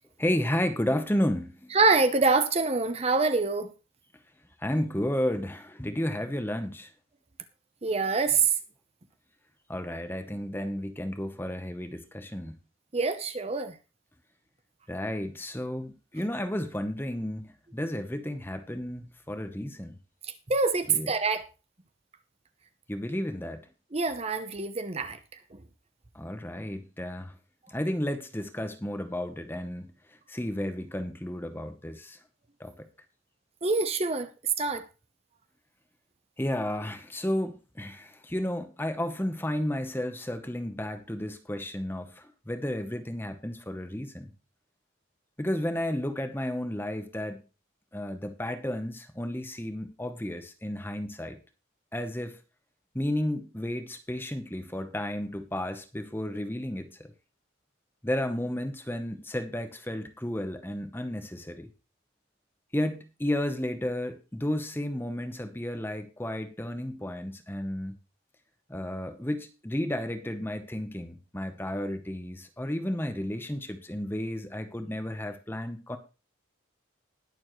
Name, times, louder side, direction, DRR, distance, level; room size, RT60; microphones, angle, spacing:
voice 1, 0.2-1.7 4.6-6.9 9.7-12.6 14.9-19.9 20.9-21.1 22.9-23.6 26.1-27.3 27.7-29.9 30.3-32.2 32.6-32.9 36.4-44.3 45.4-47.4 47.9-51.4 51.9-52.4 52.9-56.9 58.0-61.7 62.7-67.9 68.7-76.0, left 1 dB, 10° left, 0.9 m, -32 dB
voice 2, 1.7-3.7 7.8-8.5 12.9-13.7 20.5-21.5 23.9-25.2 25.5-25.6 33.6-34.8, right 4 dB, 30° right, 0.8 m, -25 dB
20.0 x 7.1 x 3.1 m
head